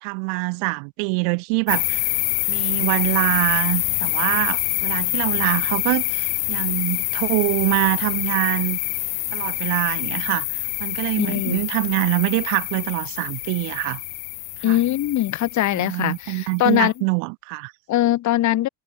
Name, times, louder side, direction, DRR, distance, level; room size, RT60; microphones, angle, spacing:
voice 1, 0.0-2.0 2.5-8.8 9.3-10.5 10.8-14.0 14.6-14.8 15.7-17.7, right 40 dB or more, 75° right, 1.8 m, -24 dB
sound 1, 1.7-16.7, left 25 dB, 85° left, 0.5 m, -26 dB
voice 2, 11.2-11.6 14.6-16.9 17.9-18.7, left 14 dB, 40° left, 0.7 m, -21 dB
hypercardioid pair, 75°, 45 cm